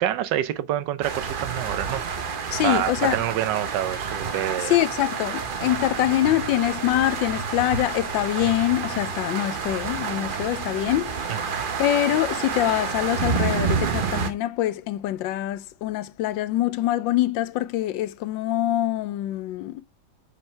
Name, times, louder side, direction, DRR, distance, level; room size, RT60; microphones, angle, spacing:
voice 1, 0.0-4.7 11.5-11.6, right 12 dB, 75° right, 1.3 m, -27 dB
sound 1, 1.0-14.3, right 5 dB, 50° right, 0.6 m, -29 dB
voice 2, 2.5-3.2 4.6-11.4 11.8-19.8, left 14 dB, 85° left, 1.3 m, -24 dB
5.6 x 5.4 x 4.3 m
omnidirectional pair, 2.0 m